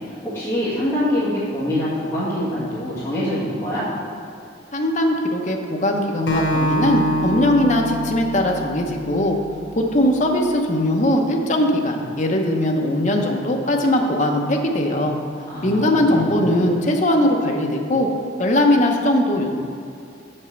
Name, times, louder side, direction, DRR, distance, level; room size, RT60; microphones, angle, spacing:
voice 1, 0.2-3.9 15.5-16.6, left 1 dB, 10° left, -14 dB, 1.7 m, -24 dB
voice 2, 4.7-9.4 9.8-15.1 15.6-18.1 18.4-19.5, left 1 dB, 40° left, 1 dB, 0.9 m, -20 dB
Acoustic guitar, 6.3-9.6, equal, 85° left, 1.4 m, -24 dB
6.9 x 5.4 x 6.7 m, 2.6 s
head